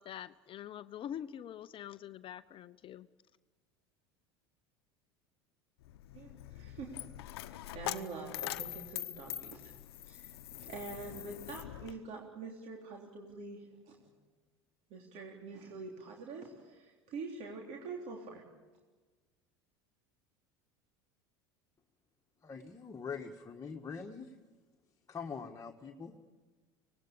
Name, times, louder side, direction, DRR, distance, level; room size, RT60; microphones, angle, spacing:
voice 1, 0.0-3.1, left 10 dB, 40° left, 15 dB, 0.7 m, -45 dB
Coin (dropping), 5.8-11.9, left 15 dB, 75° left, 0.9 m, -43 dB
voice 2, 6.1-6.9 7.4-9.8 10.0-14.1 14.9-18.4, right 4 dB, 55° right, 0 dB, 3.6 m, -46 dB
voice 3, 22.4-24.4 25.1-26.2, left 5 dB, 25° left, 2 dB, 1.7 m, -43 dB
25.0 x 19.0 x 8.6 m, 1.4 s
hypercardioid pair, 75°, 13 cm